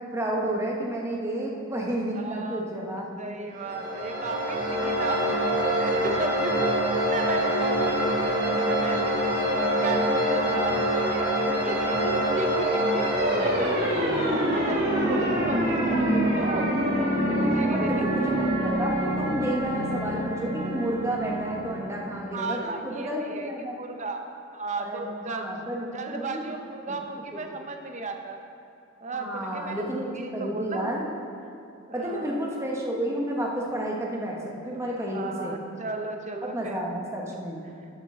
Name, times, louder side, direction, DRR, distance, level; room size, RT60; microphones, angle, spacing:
voice 1, 0.0-3.4 14.2-14.6 17.7-23.8 24.8-26.6 26.9-27.0 27.3-27.4 29.1-31.1 31.9-35.5 36.4-37.6, right 1 dB, 15° right, -2 dB, 1.2 m, -31 dB
voice 2, 2.1-2.7 3.2-5.3 5.7-9.2 9.5-13.1 13.4-14.1 14.5-16.8 17.4-18.1 22.3-24.2 24.5-25.6 25.9-28.4 29.0-30.1 30.4-30.9 31.9-32.4 35.1-36.8, right 3 dB, 35° right, 4 dB, 0.8 m, -35 dB
sound 1, 3.6-22.2, equal, 50° right, 2.5 m, -25 dB
11.5 x 7.4 x 3.8 m, 2.7 s
head